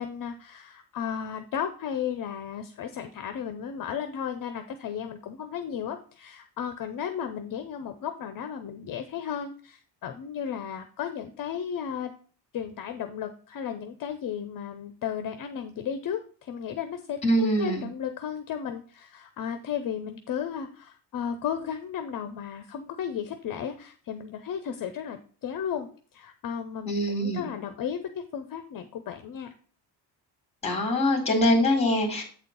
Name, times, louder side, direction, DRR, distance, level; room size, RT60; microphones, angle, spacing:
voice 1, 0.0-12.1 12.5-29.5, left 8 dB, 45° left, 8 dB, 0.7 m, -34 dB
voice 2, 17.2-17.8 26.9-27.5 30.6-32.2, equal, 15° left, 3 dB, 2.4 m, -24 dB
8.3 x 4.3 x 5.2 m, 0.42 s
cardioid pair, 180°, 45 cm